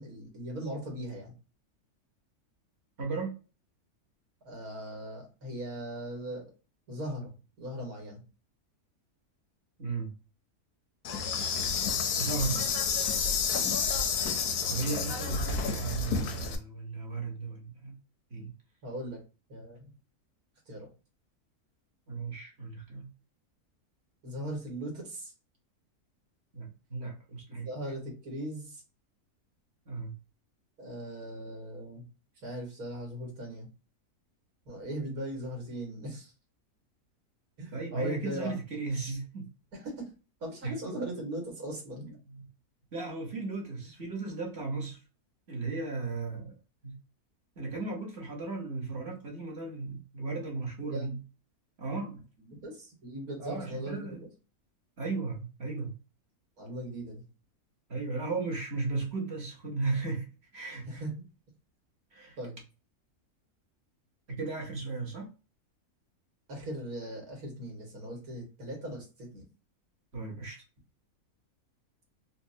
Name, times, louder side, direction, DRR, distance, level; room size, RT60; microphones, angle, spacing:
voice 1, 0.0-1.3 4.4-6.5 6.9-7.3 7.6-8.2 13.5-13.7 18.8-19.2 19.5-19.9 20.7-20.9 24.2-25.3 27.5-28.8 30.8-32.1 32.4-33.7 34.7-36.3 37.6-38.6 39.7-40.1 40.4-42.2 50.8-51.2 52.4-54.3 56.6-57.2 60.9-61.1 62.4-62.6 66.5-69.4, right 1 dB, 75° right, 2.0 m, -39 dB
voice 2, 3.0-3.4 9.8-10.1 12.1-12.6 14.7-18.0 18.3-18.5 22.1-23.1 26.5-27.7 29.9-30.1 37.7-39.5 40.6-41.0 42.3-42.4 42.9-45.0 45.5-46.6 46.8-47.0 47.6-51.2 51.8-52.2 52.5-52.6 53.4-54.2 55.0-56.0 57.9-61.0 62.1-62.4 64.3-65.3 70.1-70.6, right 3 dB, 50° right, 1.2 m, -35 dB
Insect, 11.0-16.6, left 5 dB, 85° left, 1.2 m, -30 dB
4.1 x 2.2 x 2.7 m
omnidirectional pair, 1.6 m